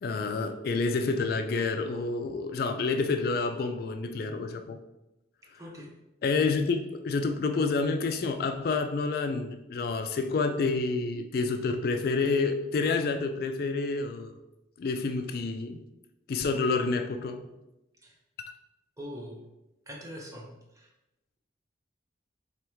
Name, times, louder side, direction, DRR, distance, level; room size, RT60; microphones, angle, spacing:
voice 1, 0.0-4.8 6.2-14.3 14.8-15.8 16.3-17.4, left 4 dB, 55° left, 7 dB, 0.3 m, -28 dB
voice 2, 5.6-5.9 18.0-18.2 19.0-19.4 19.9-20.9, equal, 15° right, 0 dB, 0.7 m, -43 dB
3.5 x 3.3 x 4.5 m, 0.93 s
head